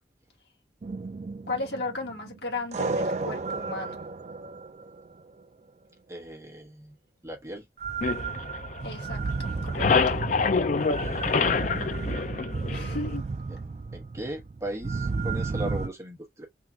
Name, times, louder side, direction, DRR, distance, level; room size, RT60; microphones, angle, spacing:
sound 1, 0.8-5.2 7.8-15.9, right 4 dB, 40° right, 0.4 m, -33 dB
voice 1, 1.5-4.0 8.8-10.2 12.7-13.2, left 2 dB, 75° left, 1.7 m, -35 dB
voice 2, 6.1-7.0 7.2-7.7 11.0-11.5 13.5-13.6 13.9-16.5, right 1 dB, 15° right, 1.2 m, -38 dB
sound 2, 8.0-9.2 9.4-13.1, left 5 dB, 45° left, 0.4 m, -26 dB
3.6 x 2.9 x 2.7 m
head